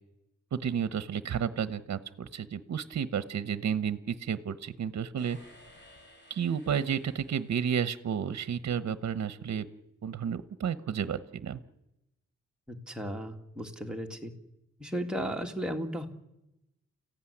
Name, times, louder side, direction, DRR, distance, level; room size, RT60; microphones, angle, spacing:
voice 1, 0.5-5.4 6.3-9.7 10.0-11.6, right 8 dB, 60° right, 14 dB, 1.0 m, -32 dB
sound 1, 5.2-8.3, left 1 dB, 35° left, 7.7 m, -57 dB
voice 2, 12.7-14.3 14.8-16.1, equal, 5° right, 2 dB, 2.2 m, -35 dB
29.0 x 15.5 x 10.0 m, 0.93 s
wide cardioid pair, 140°, 30 cm